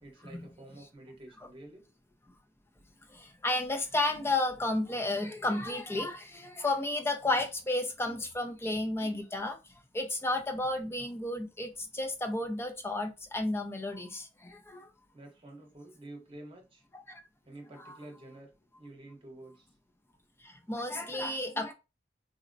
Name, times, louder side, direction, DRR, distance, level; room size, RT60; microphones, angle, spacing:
voice 1, 0.0-1.8 15.1-16.9 17.4-19.7, right 1 dB, 30° right, 0.9 m, -49 dB
voice 2, 3.1-9.6 9.9-14.9 16.9-17.2 17.8-17.9 20.4-21.7, left 2 dB, 15° left, 0.4 m, -32 dB
3.8 x 2.1 x 2.5 m
head